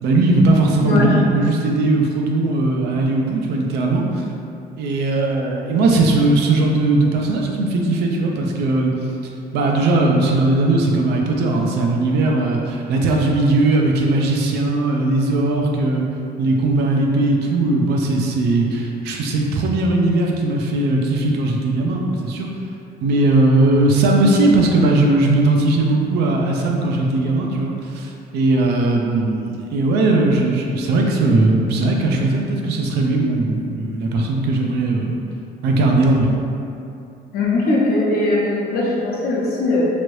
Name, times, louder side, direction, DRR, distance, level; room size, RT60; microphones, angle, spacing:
voice 1, 0.0-4.2 4.8-8.9 9.5-16.1 16.4-22.5 23.0-35.2 35.6-36.3, right 2 dB, 75° right, 0 dB, 0.5 m, -18 dB
voice 2, 37.3-39.9, left 2 dB, 65° left, -4 dB, 0.8 m, -19 dB
3.0 x 2.6 x 3.1 m, 2.6 s
cardioid pair, 110°, 17 cm